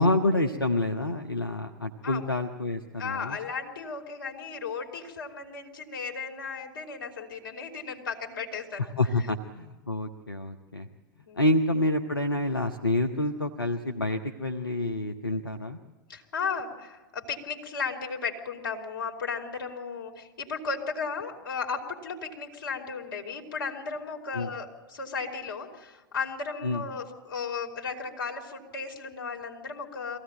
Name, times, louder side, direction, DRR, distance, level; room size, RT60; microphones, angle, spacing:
voice 1, 0.0-3.4 9.0-10.9 11.4-15.8 24.3-24.5 26.6-26.8, left 2 dB, 90° left, 5 dB, 0.9 m, -28 dB
voice 2, 3.0-8.9 11.3-11.4 16.1-30.2, left 5 dB, 70° left, 2 dB, 3.3 m, -35 dB
23.0 x 16.5 x 9.0 m, 1.2 s
figure-of-eight pair, 90°, 12 cm